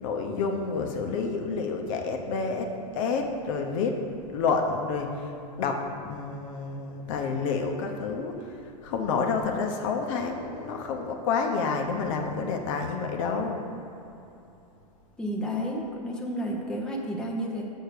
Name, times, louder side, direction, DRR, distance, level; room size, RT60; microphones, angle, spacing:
voice 1, 0.0-4.0 4.3-13.6, left 4 dB, 55° left, 3 dB, 0.9 m, -29 dB
voice 2, 15.2-17.6, equal, 5° left, -2 dB, 0.8 m, -31 dB
6.5 x 4.8 x 6.6 m, 2.9 s
hypercardioid pair, 130°, 20 cm